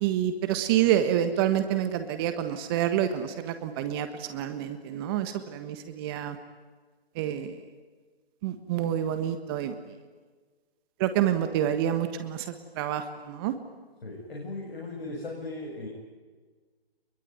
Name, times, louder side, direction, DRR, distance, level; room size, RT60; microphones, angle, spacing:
voice 1, 0.0-6.4 7.1-7.6 8.4-9.8 11.0-13.5, right 10 dB, 25° right, 9 dB, 1.4 m, -28 dB
voice 2, 14.0-15.9, left 2 dB, 65° left, -1 dB, 7.7 m, -37 dB
23.5 x 23.0 x 9.4 m, 1.4 s
figure-of-eight pair, 145°, 31 cm